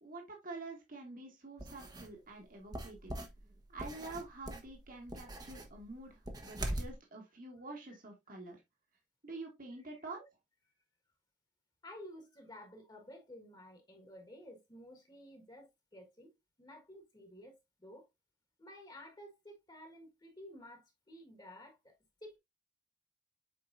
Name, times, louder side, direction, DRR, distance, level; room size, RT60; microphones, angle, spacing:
voice 1, 0.0-3.1 3.7-8.6 9.2-10.3, right 3 dB, 50° right, 1.7 m, -47 dB
sound 1, 1.6-2.1 2.7-6.9, right 1 dB, 20° right, 1.0 m, -42 dB
voice 2, 11.8-18.1 18.6-21.9 22.2-22.4, left 1 dB, 25° left, 1.6 m, -53 dB
7.7 x 4.7 x 2.6 m
head